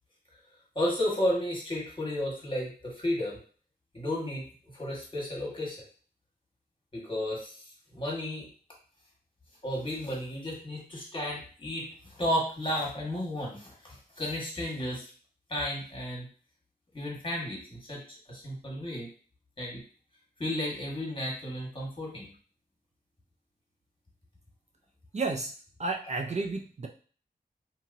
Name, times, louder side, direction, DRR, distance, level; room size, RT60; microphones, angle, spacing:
voice 1, 0.7-3.4 3.9-4.5 4.7-5.8 6.9-7.6 7.9-8.5 9.6-15.1 15.5-16.3 16.9-18.0 18.3-19.1 19.6-19.8 20.4-22.3, left 1 dB, 30° left, -3 dB, 1.4 m, -33 dB
voice 2, 25.1-25.5 25.8-26.9, right 3 dB, 40° right, 3 dB, 0.4 m, -31 dB
2.9 x 2.7 x 2.6 m, 0.41 s
cardioid pair, 45°, 17 cm